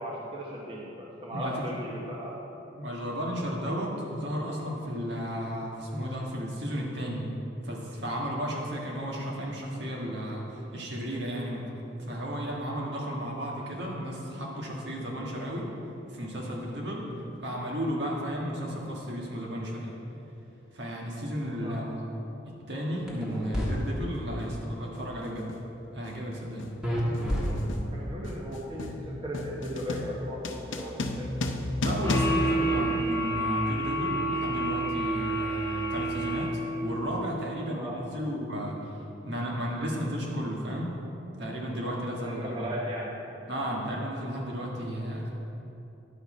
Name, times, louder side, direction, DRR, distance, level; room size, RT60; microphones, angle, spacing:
voice 1, 0.0-2.4 21.6-22.0 27.9-31.4 37.6-38.0 42.2-43.2, equal, 25° right, -4 dB, 0.9 m, -37 dB
voice 2, 1.3-1.6 2.7-15.7 16.1-17.2 17.4-20.0 20.7-22.1 22.5-25.6 25.9-26.7 31.8-38.9 39.2-41.0 41.4-42.7 43.5-45.3, equal, 65° right, -2 dB, 1.6 m, -33 dB
sound 1, 23.1-23.7 26.8-28.0, equal, 5° right, 1.5 m, -29 dB
sound 2, 23.3-23.5 24.4-24.7 24.9-33.5, left 2 dB, 85° left, 0.6 m, -34 dB
sound 3, 32.0-36.9, right 1 dB, 15° left, 1.1 m, -29 dB
10.5 x 7.2 x 4.3 m, 2.9 s
head